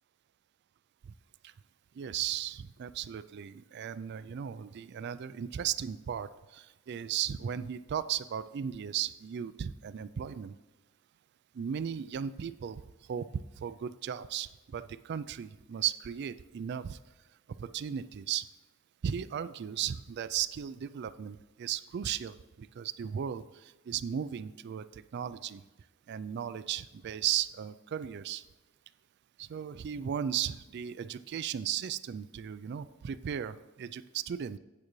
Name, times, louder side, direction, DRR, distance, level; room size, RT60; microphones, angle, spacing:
voice 1, 1.9-10.5 11.5-17.0 17.6-18.5 19.0-25.6 26.1-28.4 29.4-34.6, right 9 dB, 55° right, 14 dB, 0.3 m, -36 dB
8.8 x 8.3 x 3.1 m, 1.1 s
head